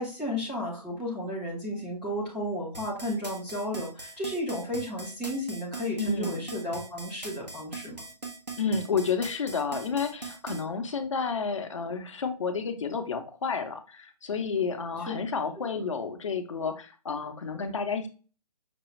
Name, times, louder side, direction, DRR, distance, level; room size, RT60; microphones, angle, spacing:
voice 1, 0.0-8.0 15.7-15.8, left 1 dB, ahead, -12 dB, 0.3 m, -33 dB
sound 1, 2.7-10.6, right 3 dB, 85° right, 1.3 m, -40 dB
voice 2, 6.0-6.5 8.6-18.1, left 5 dB, 50° left, 7 dB, 0.7 m, -30 dB
5.9 x 2.2 x 3.1 m, 0.35 s
figure-of-eight pair, 140°, 20 cm